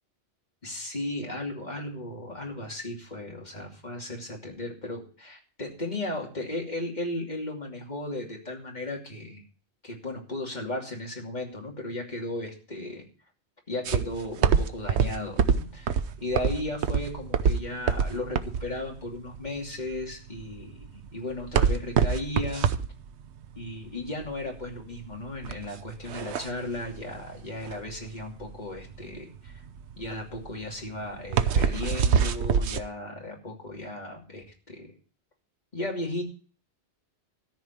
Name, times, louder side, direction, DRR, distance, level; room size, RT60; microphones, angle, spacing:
voice 1, 0.6-9.4 9.8-13.1 13.7-22.7 23.5-29.6 30.0-34.9 35.7-36.2, left 1 dB, 40° left, 0 dB, 3.0 m, -35 dB
sound 1, 13.8-32.8, right 7 dB, 75° right, 1.1 m, -26 dB
13.5 x 5.3 x 9.2 m, 0.40 s
omnidirectional pair, 1.2 m